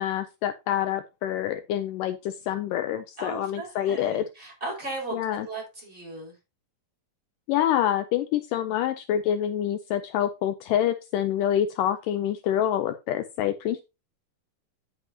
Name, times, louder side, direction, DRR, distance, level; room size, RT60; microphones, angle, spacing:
voice 1, 0.0-4.2 5.1-5.5 7.5-13.8, left 11 dB, 80° left, 11 dB, 2.1 m, -26 dB
voice 2, 3.2-6.3, right 2 dB, 15° right, -3 dB, 5.0 m, -37 dB
9.4 x 8.1 x 2.8 m, 0.25 s
omnidirectional pair, 4.1 m